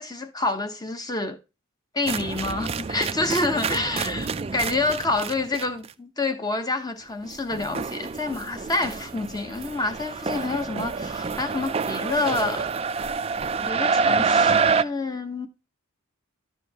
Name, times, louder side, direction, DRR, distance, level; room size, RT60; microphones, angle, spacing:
voice 1, 0.0-1.4 1.9-12.7 13.7-15.5, left 2 dB, 15° left, 1.0 m, -28 dB
sound 1, 2.1-5.9 7.2-14.8, right 5 dB, 25° right, 0.3 m, -27 dB
12.0 x 5.1 x 2.8 m
head